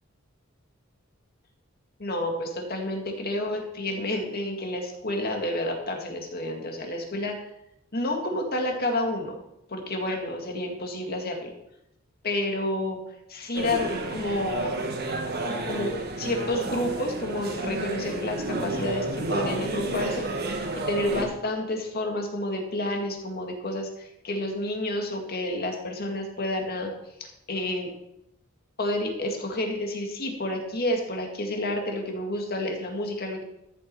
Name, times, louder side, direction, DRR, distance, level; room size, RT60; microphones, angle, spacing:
voice 1, 2.0-7.3 7.9-9.4 9.7-11.5 12.2-13.0 13.3-14.7 15.6-26.9 27.2-27.9 28.8-33.4, left 1 dB, 50° left, 2 dB, 2.1 m, -30 dB
sound 1, 13.5-21.2, right 2 dB, 50° right, 1.5 m, -31 dB
13.5 x 7.3 x 4.7 m, 0.83 s
head